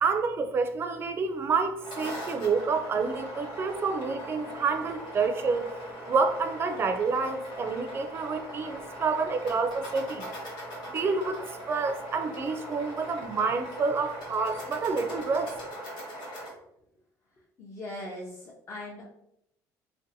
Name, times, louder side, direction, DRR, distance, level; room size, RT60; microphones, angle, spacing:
voice 1, 0.0-10.3 10.9-15.5, right 4 dB, 35° right, 7 dB, 0.3 m, -28 dB
sound 1, 1.6-16.5, equal, 75° left, 1.0 m, -40 dB
voice 2, 17.6-19.0, left 1 dB, 40° left, -5 dB, 0.6 m, -40 dB
2.6 x 2.1 x 2.6 m, 0.77 s
cardioid pair, 105°, 7 cm